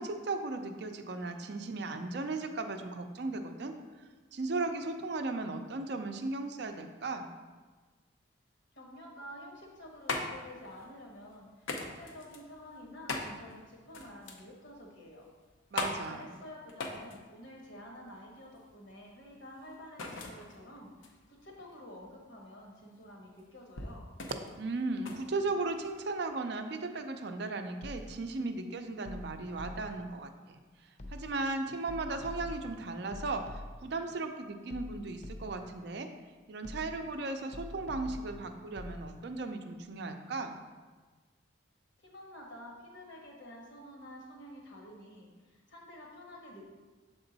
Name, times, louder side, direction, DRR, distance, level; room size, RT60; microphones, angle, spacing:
voice 1, 0.0-3.7 4.3-7.3 15.7-16.2 24.6-30.6 31.1-36.1 36.5-40.6, right 3 dB, 55° right, 6 dB, 0.5 m, -36 dB
voice 2, 8.7-15.3 16.0-24.0 42.0-46.7, left 1 dB, 65° left, -1 dB, 1.3 m, -50 dB
sound 1, 9.6-26.1, left 3 dB, 85° left, 0.7 m, -42 dB
sound 2, 27.8-28.3 29.0-30.1 31.0-31.5 31.9-34.0 34.7-35.7 36.6-37.2 37.5-39.0, left 1 dB, 35° left, 0.4 m, -45 dB
6.9 x 3.7 x 4.0 m, 1.4 s
head